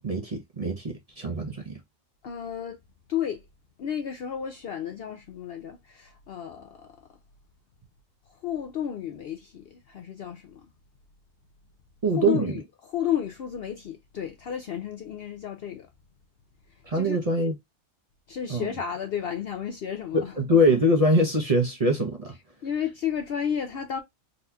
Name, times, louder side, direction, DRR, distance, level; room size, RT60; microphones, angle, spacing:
voice 1, 0.0-1.8 12.0-12.6 16.9-17.5 18.5-18.7 20.1-22.4, equal, 35° right, 0.7 m, -23 dB
voice 2, 2.2-2.8 3.1-3.4 3.8-6.9 8.4-10.7 12.2-15.9 16.9-17.2 18.3-20.3 22.6-24.0, left 9 dB, 65° left, 0.6 m, -32 dB
4.1 x 2.8 x 2.2 m
omnidirectional pair, 1.4 m